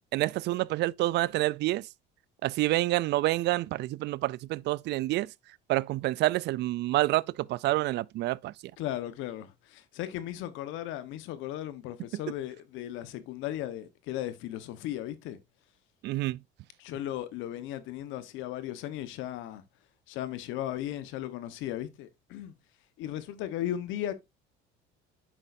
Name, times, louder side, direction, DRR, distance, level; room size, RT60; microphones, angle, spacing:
voice 1, 0.1-1.9 2.4-5.3 5.7-8.5 16.0-16.4, right 17 dB, 55° right, 0.4 m, -28 dB
voice 2, 8.8-15.4 16.8-19.6 20.1-22.5 23.0-24.1, left 12 dB, 70° left, 1.2 m, -36 dB
9.0 x 6.3 x 2.6 m
supercardioid pair, 105°, 21 cm